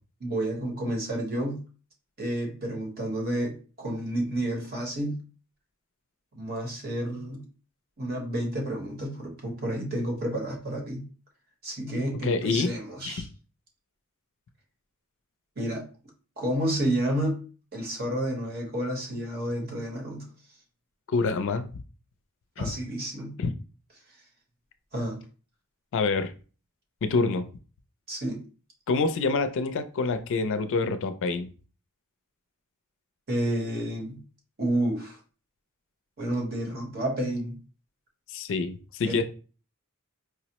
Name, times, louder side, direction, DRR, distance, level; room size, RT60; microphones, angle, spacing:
voice 1, 0.2-1.6 2.2-5.2 6.3-7.4 8.0-11.0 11.6-13.3 15.6-15.8 16.4-17.4 17.7-20.2 22.6-23.3 24.9-25.2 28.1-28.4 33.3-34.2 34.6-35.2 36.2-37.6 39.0-39.2, right 1 dB, 45° right, 1.1 m, -30 dB
voice 2, 12.2-12.7 13.1-13.2 21.1-21.7 22.6-22.7 23.4-23.5 25.9-26.3 27.0-27.4 28.9-31.5 38.3-39.2, left 4 dB, 60° left, 0.4 m, -26 dB
4.7 x 2.0 x 2.8 m
head